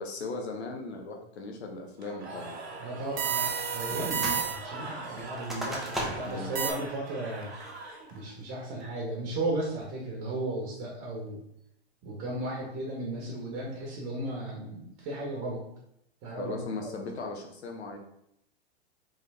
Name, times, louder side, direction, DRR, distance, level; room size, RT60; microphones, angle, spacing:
voice 1, 0.0-2.6 6.3-6.6 16.4-18.0, left 3 dB, 85° left, 2 dB, 1.0 m, -38 dB
Cheering / Crowd, 2.0-8.3, right 2 dB, 80° right, 1.4 m, -42 dB
voice 2, 2.8-7.6 8.1-11.4 12.0-15.6 16.2-17.0, right 1 dB, 45° right, -2 dB, 1.3 m, -35 dB
sound 1, 3.2-4.8 6.6-6.7, right 8 dB, 30° right, 0.7 m, -30 dB
sound 2, 3.9-4.5 4.7-6.5 6.9-7.0 7.5-7.9 8.4-8.8, right 1 dB, ahead, 0.9 m, -37 dB
3.6 x 3.5 x 3.3 m, 0.76 s
hypercardioid pair, 110°, 32 cm